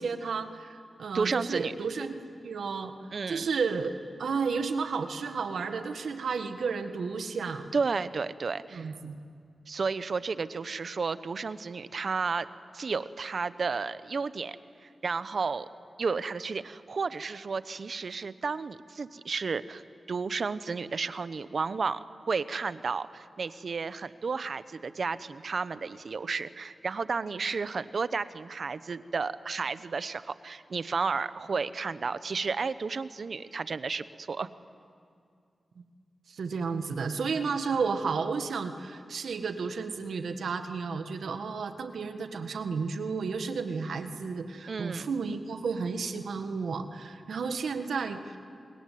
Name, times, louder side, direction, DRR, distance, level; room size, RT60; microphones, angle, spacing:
voice 1, 0.0-2.1 2.4-2.9 3.3-7.7 8.7-9.1 36.3-48.4, right 5 dB, 85° right, 8 dB, 1.7 m, -32 dB
voice 2, 1.1-1.7 3.1-3.5 7.7-8.9 9.7-12.5 12.7-14.6 14.8-15.7 16.0-19.8 20.1-22.0 22.3-34.5 44.7-45.1, right 4 dB, 65° right, 14 dB, 0.9 m, -32 dB
28.5 x 21.5 x 9.5 m, 2.3 s
cardioid pair, 45°, 0 cm